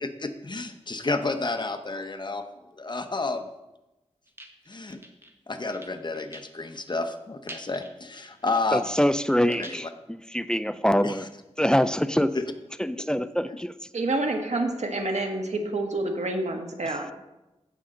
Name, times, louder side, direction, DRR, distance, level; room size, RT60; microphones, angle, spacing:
voice 1, 0.0-2.4 2.8-3.5 4.7-5.0 5.5-8.9 9.5-9.9 11.0-11.2 13.5-13.6, left 3 dB, 40° left, 7 dB, 0.9 m, -30 dB
sound 1, 4.3-5.3 5.7-6.8 7.1-7.2 7.5-9.8, right 1 dB, 20° right, 1.3 m, -45 dB
voice 2, 8.7-11.3 11.6-12.3 12.8-13.7 16.9-17.0, equal, 5° left, 13 dB, 0.4 m, -24 dB
voice 3, 13.9-17.1, right 2 dB, 70° right, 4 dB, 1.4 m, -28 dB
15.5 x 5.6 x 3.8 m, 0.98 s
wide cardioid pair, 70°, 12 cm